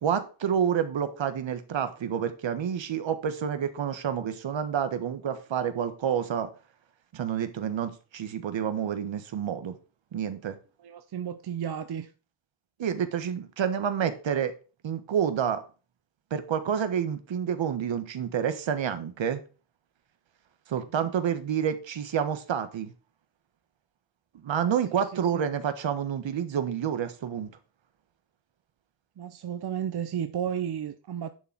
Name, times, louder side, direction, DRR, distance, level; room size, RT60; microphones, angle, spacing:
voice 1, 0.0-6.5 7.1-9.8 10.1-10.6 12.8-14.5 14.8-15.6 16.3-19.4 20.7-22.9 24.4-27.5, right 8 dB, 70° right, 1.4 m, -29 dB
voice 2, 10.8-12.1 21.0-21.1 24.9-25.4 29.2-31.3, right 9 dB, 55° right, 0.8 m, -33 dB
11.0 x 3.9 x 6.1 m
cardioid pair, 70°, 48 cm